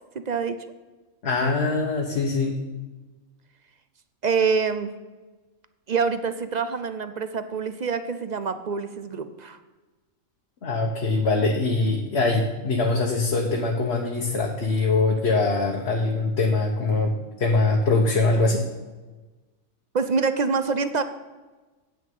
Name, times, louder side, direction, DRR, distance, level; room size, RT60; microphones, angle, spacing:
voice 1, 0.3-0.6 4.2-4.9 5.9-9.6 19.9-21.0, right 5 dB, 55° right, 10 dB, 0.5 m, -25 dB
voice 2, 1.2-2.6 10.6-17.1 17.4-18.6, left 3 dB, 50° left, 1 dB, 1.2 m, -23 dB
9.5 x 8.0 x 5.4 m, 1.2 s
omnidirectional pair, 1.4 m